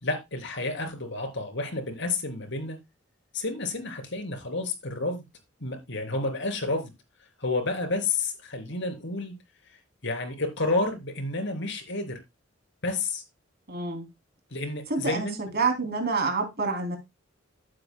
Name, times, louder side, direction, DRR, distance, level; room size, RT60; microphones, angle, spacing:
voice 1, 0.0-2.8 3.3-5.2 5.6-6.9 7.4-9.3 10.0-12.2 12.8-13.2 14.5-15.4, left 3 dB, 65° left, 3.4 m, -30 dB
voice 2, 13.7-14.1 14.9-15.3 15.5-17.0, right 4 dB, 55° right, 2.9 m, -27 dB
15.5 x 7.6 x 2.2 m
head